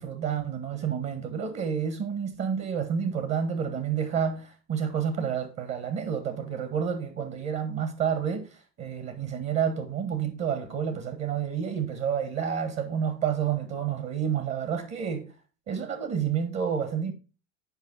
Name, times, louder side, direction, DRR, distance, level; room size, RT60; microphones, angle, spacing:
voice 1, 0.0-8.5 8.8-15.3 15.7-17.1, right 7 dB, 45° right, 1.7 m, -29 dB
9.0 x 5.0 x 4.0 m
hypercardioid pair, 95°, 35 cm